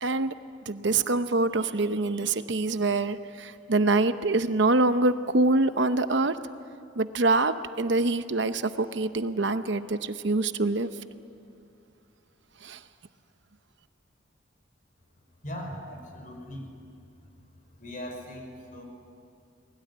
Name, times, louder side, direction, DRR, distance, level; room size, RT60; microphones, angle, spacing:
voice 1, 0.0-0.3 0.7-6.4 7.0-10.9 12.6-12.8, right 2 dB, 60° right, 10 dB, 0.9 m, -25 dB
voice 2, 15.4-16.7 17.8-18.8, equal, 40° left, 3 dB, 5.1 m, -39 dB
30.0 x 20.5 x 9.6 m, 2.5 s
head